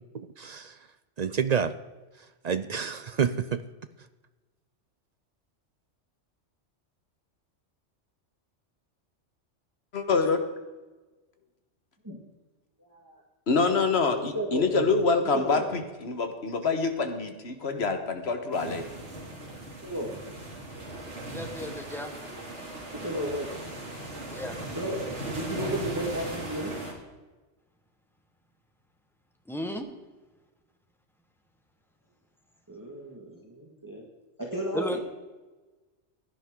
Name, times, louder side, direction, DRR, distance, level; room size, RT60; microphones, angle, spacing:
voice 1, 0.1-0.7 1.2-1.7 2.4-3.6, right 7 dB, 55° right, 12 dB, 0.4 m, -28 dB
voice 2, 9.9-10.4 13.5-18.8, left 4 dB, 60° left, 6 dB, 1.6 m, -26 dB
voice 3, 12.8-13.2 14.3-14.7 15.3-15.6 19.8-20.1 22.9-23.5 24.7-25.0 25.4-26.7 32.7-34.0 34.4-35.0, right 1 dB, 15° right, -1 dB, 1.8 m, -33 dB
sound 1, 18.5-26.9, right 1 dB, 75° right, 3.1 m, -38 dB
voice 4, 21.3-22.1 24.3-24.5 29.5-29.9 34.7-35.0, equal, ahead, 5 dB, 1.2 m, -33 dB
16.0 x 11.0 x 3.8 m, 1.2 s
omnidirectional pair, 1.2 m